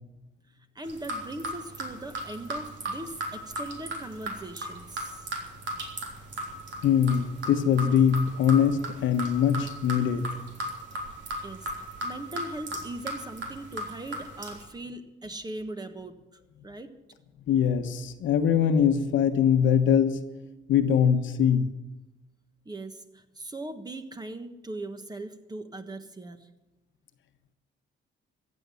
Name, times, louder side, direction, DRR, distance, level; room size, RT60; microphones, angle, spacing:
voice 1, 0.7-5.2 11.4-16.9 22.6-26.5, right 2 dB, 20° right, 8 dB, 1.4 m, -40 dB
sound 1, 0.8-14.6, right 1 dB, 65° right, 3.5 m, -37 dB
voice 2, 6.8-10.3 17.5-20.2 20.7-21.7, left 8 dB, 75° left, 8 dB, 1.2 m, -22 dB
15.0 x 7.7 x 9.7 m, 1.0 s
cardioid pair, 90°, 20 cm